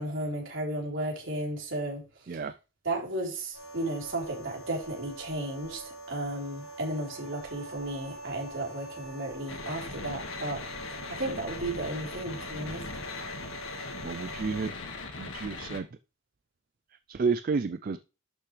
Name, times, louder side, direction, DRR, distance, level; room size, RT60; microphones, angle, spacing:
voice 1, 0.0-2.5 2.8-12.8, right 1 dB, 65° right, -2 dB, 4.0 m, -34 dB
sound 1, 3.5-14.7, right 2 dB, 90° left, 1.3 m, -46 dB
Wind instrument woodwind instrument, 6.6-10.9, right 3 dB, 5° right, 1.7 m, -51 dB
sound 2, 9.5-15.8, left 3 dB, 70° left, 1.7 m, -39 dB
voice 2, 14.0-14.7 15.2-15.9 17.1-18.0, right 4 dB, 45° right, 12 dB, 0.3 m, -30 dB
11.5 x 6.6 x 3.3 m, 0.33 s
head